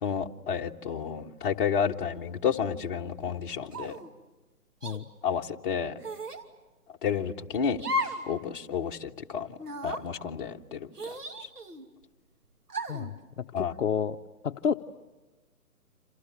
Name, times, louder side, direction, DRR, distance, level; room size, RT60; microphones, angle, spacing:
voice 1, 0.0-4.0 5.2-5.9 7.0-7.8 8.3-9.6 9.8-10.9 13.5-13.7, left 7 dB, 35° left, 2 dB, 1.4 m, -30 dB
sound 1, 3.7-4.1 4.8-5.0 6.0-6.4 7.8-8.3 8.6-8.7 9.6-10.0 10.9-11.9 12.7-13.1, left 1 dB, 85° right, 3.0 m, -34 dB
voice 2, 12.9-14.2 14.4-14.7, left 7 dB, 50° left, 5 dB, 0.9 m, -30 dB
29.0 x 27.5 x 7.3 m, 1.2 s
figure-of-eight pair, 150°, 46 cm